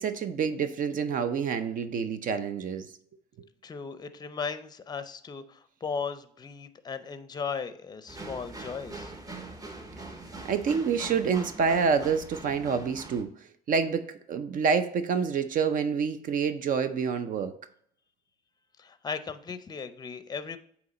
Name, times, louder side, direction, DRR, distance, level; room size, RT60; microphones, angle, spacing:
voice 1, 0.0-2.9 10.5-13.3 13.7-17.5, right 6 dB, 55° right, 10 dB, 0.6 m, -27 dB
voice 2, 3.6-9.1 18.8-20.6, left 5 dB, 25° left, 12 dB, 0.5 m, -37 dB
sound 1, 8.1-13.2, right 2 dB, 20° right, 0.9 m, -42 dB
8.0 x 2.9 x 4.2 m, 0.63 s
cardioid pair, 110°, 17 cm